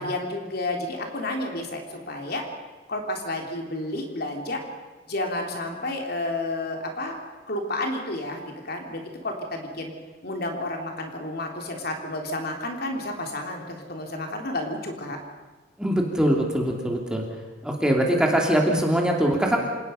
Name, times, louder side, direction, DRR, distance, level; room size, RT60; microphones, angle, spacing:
voice 1, 0.0-2.4 2.9-4.6 5.1-7.1 7.5-9.9 10.2-15.2, left 2 dB, 55° left, 2 dB, 3.3 m, -31 dB
voice 2, 15.8-17.2 17.6-19.6, right 1 dB, 5° right, 0 dB, 2.8 m, -22 dB
27.5 x 19.0 x 5.7 m, 1.3 s
head